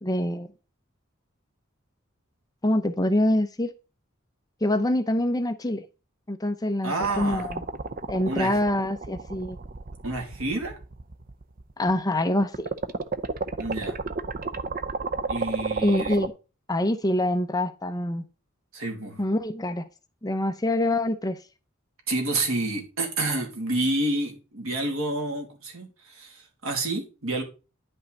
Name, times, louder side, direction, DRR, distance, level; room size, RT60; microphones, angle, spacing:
voice 1, 0.0-0.5 2.6-3.7 4.6-5.8 6.3-7.6 8.1-9.6 11.8-12.7 15.8-16.3 16.7-18.2 19.2-19.8 20.2-21.4, left 1 dB, 20° left, 0.7 m, -25 dB
voice 2, 6.8-7.5 8.3-8.6 10.0-10.7 13.6-14.0 15.3-16.2 18.7-19.2 22.1-27.4, right 2 dB, 85° right, 2.7 m, -29 dB
sound 1, 7.0-12.0 12.4-16.3, right 4 dB, 40° right, 0.7 m, -32 dB
10.0 x 5.5 x 4.0 m
head